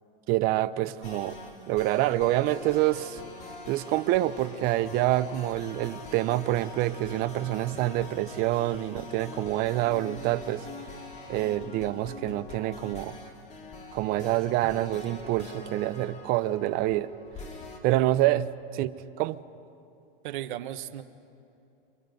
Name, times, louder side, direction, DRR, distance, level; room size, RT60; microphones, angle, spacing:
voice 1, 0.3-1.4 1.7-3.2 3.7-10.7 11.3-13.2 13.9-17.1 17.8-19.4, right 15 dB, 30° right, 0.6 m, -27 dB
sound 1, 1.0-17.8, left 3 dB, 25° left, 2.3 m, -44 dB
voice 2, 20.2-21.0, right 13 dB, 60° right, 1.3 m, -35 dB
30.0 x 24.5 x 5.3 m
supercardioid pair, 140°, 29 cm